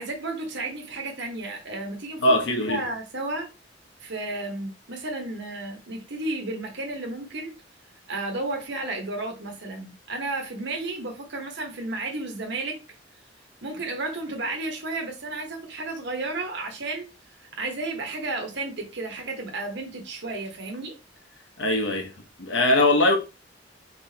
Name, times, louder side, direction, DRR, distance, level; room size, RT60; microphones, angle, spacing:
voice 1, 0.0-3.5 4.0-7.5 8.1-12.8 13.6-17.1 17.6-20.9, right 2 dB, 65° right, 1.1 m, -32 dB
voice 2, 2.2-2.8 21.6-22.1 22.4-23.2, left 1 dB, 70° left, 1.1 m, -21 dB
4.5 x 3.3 x 2.8 m
head